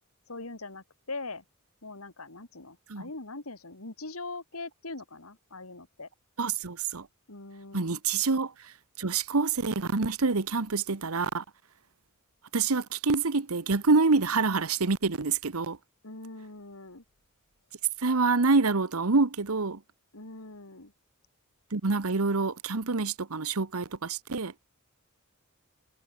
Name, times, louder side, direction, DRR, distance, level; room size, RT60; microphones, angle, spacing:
voice 1, 0.3-1.4 1.8-6.1 7.3-8.0 16.0-17.0 20.1-20.9, left 3 dB, 80° left, 3.2 m, -42 dB
voice 2, 6.4-7.1 7.7-8.5 9.0-11.4 12.5-15.8 18.0-19.8 21.7-24.5, right 4 dB, 85° right, 1.1 m, -26 dB
head